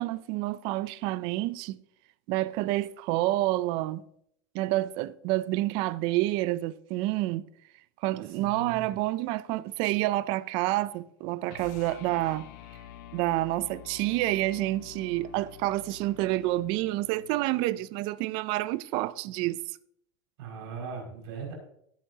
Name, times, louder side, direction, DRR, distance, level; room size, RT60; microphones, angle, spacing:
voice 1, 0.0-1.8 2.3-4.0 4.5-7.5 8.0-12.5 13.1-19.6, right 17 dB, 40° right, 0.4 m, -28 dB
voice 2, 8.2-8.9 20.4-21.5, right 5 dB, 70° right, 5.7 m, -39 dB
sound 1, 11.5-17.9, left 9 dB, 55° left, 0.9 m, -48 dB
16.5 x 10.0 x 2.8 m
supercardioid pair, 170°, 13 cm